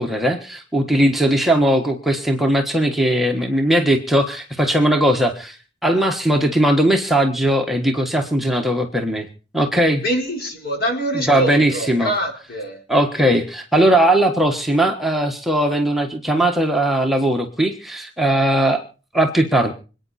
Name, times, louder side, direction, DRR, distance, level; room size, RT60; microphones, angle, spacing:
voice 1, 0.0-5.6 5.8-9.3 9.5-10.0 11.1-12.1 12.9-18.8 19.1-19.7, right 1 dB, ahead, 2 dB, 1.4 m, -18 dB
voice 2, 10.0-12.8, right 1 dB, 55° left, 2 dB, 4.6 m, -24 dB
26.0 x 9.3 x 4.2 m, 0.36 s
head